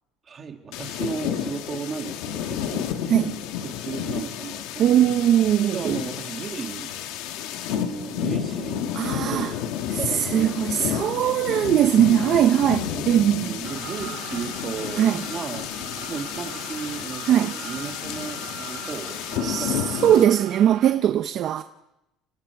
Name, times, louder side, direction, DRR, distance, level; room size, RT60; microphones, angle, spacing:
voice 1, 0.3-3.0 3.6-5.3 5.7-6.9 7.7-9.6 9.9-11.1 12.9-13.1 13.4-15.7 15.9-20.3, right 6 dB, 25° right, 1.8 m, -35 dB
sound 1, 0.7-20.3, left 9 dB, 85° left, 1.5 m, -31 dB
voice 2, 4.8-6.0 8.9-9.5 9.9-13.5 15.0-15.2 17.3-17.5 19.4-21.6, right 10 dB, 40° right, 0.6 m, -20 dB
sound 2, 13.6-20.9, right 11 dB, 70° right, 3.3 m, -40 dB
29.5 x 19.0 x 4.7 m
cardioid pair, 175°, 0 cm